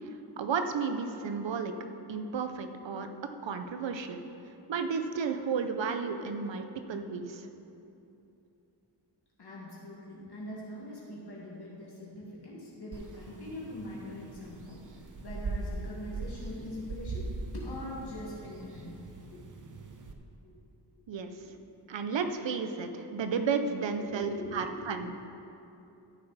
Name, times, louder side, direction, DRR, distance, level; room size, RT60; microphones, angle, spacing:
voice 1, 0.4-1.7 2.1-3.1 3.4-4.2 4.7-7.5 21.1-21.3 21.9-25.1, right 5 dB, 85° right, 7 dB, 0.7 m, -32 dB
voice 2, 9.4-17.3 17.5-19.8 20.4-20.5 21.2-21.6 24.0-25.2, left 1 dB, 60° left, -6 dB, 2.1 m, -43 dB
sound 1, 12.9-20.1, right 3 dB, 45° right, 0.7 m, -41 dB
13.0 x 6.9 x 4.1 m, 2.8 s
wide cardioid pair, 110°, 43 cm